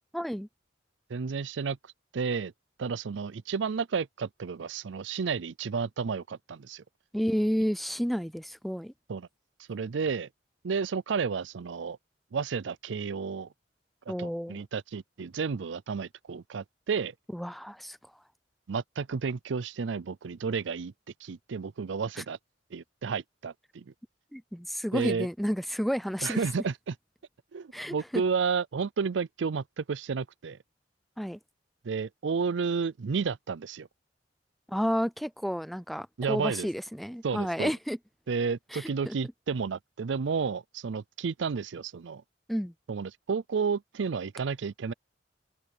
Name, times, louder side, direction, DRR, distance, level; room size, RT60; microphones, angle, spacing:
voice 1, 0.1-0.5 7.1-8.9 14.1-14.6 17.3-18.0 24.3-26.4 27.7-28.2 31.2-31.4 34.7-38.0 38.7-39.1 42.5-42.7, equal, ahead, 0.5 m, -31 dB
voice 2, 1.1-1.8 2.1-2.5 2.8-6.8 9.1-9.3 9.7-10.3 10.6-12.0 12.3-13.5 14.1-17.1 18.7-20.9 21.2-22.4 22.7-23.9 24.9-25.3 26.2-26.9 27.5-30.6 31.8-33.9 36.2-36.7 37.2-37.7 38.3-42.2 42.9-44.9, right 5 dB, 80° right, 0.5 m, -31 dB
head